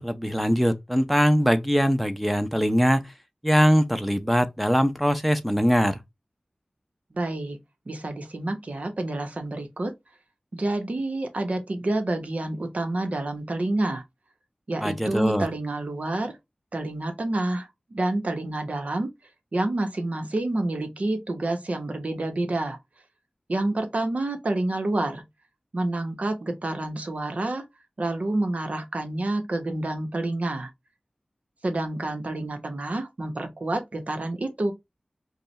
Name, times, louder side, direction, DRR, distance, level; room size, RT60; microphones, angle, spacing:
voice 1, 0.0-3.0 3.4-6.0 14.8-15.5, equal, ahead, 0.7 m, -22 dB
voice 2, 7.1-7.6 7.9-9.9 10.5-14.0 14.7-16.4 16.7-19.1 19.5-22.8 23.5-25.2 25.7-27.6 28.0-30.7 31.6-34.7, right 2 dB, 70° right, 1.0 m, -28 dB
5.0 x 2.4 x 3.2 m
wide cardioid pair, 55°, 2 cm